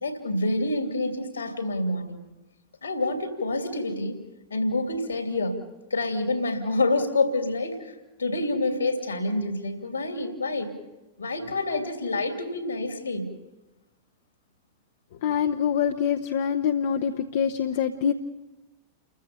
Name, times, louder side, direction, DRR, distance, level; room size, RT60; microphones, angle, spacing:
voice 1, 0.0-2.2 2.8-4.2 4.5-5.6 5.9-7.9 8.2-10.7 11.2-13.3, left 2 dB, 75° left, 6 dB, 2.8 m, -27 dB
voice 2, 15.2-18.1, left 8 dB, 55° left, 6 dB, 0.9 m, -25 dB
29.5 x 15.0 x 6.9 m, 1.1 s
figure-of-eight pair, 90°, 0 cm